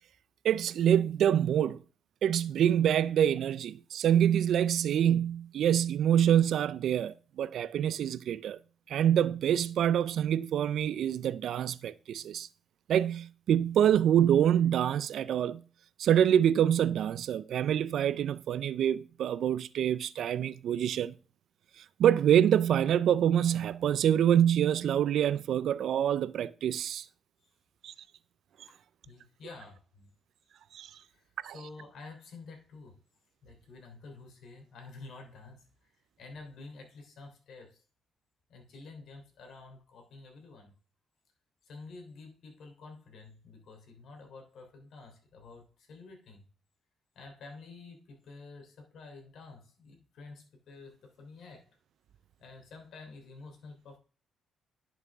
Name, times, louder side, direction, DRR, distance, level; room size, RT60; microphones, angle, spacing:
voice 1, 0.4-1.8 2.2-8.6 8.9-12.5 12.9-15.6 16.0-21.1 21.8-27.0 27.8-27.9 30.7-30.9 31.4-31.5, right 10 dB, 70° right, 0.4 m, -26 dB
voice 2, 28.7-30.1 31.0-33.0 33.4-37.8 38.5-40.7 41.6-46.5 47.1-51.7 52.4-54.0, left 3 dB, 70° left, 3.1 m, -50 dB
10.5 x 6.2 x 3.5 m
cardioid pair, 90°, 0 cm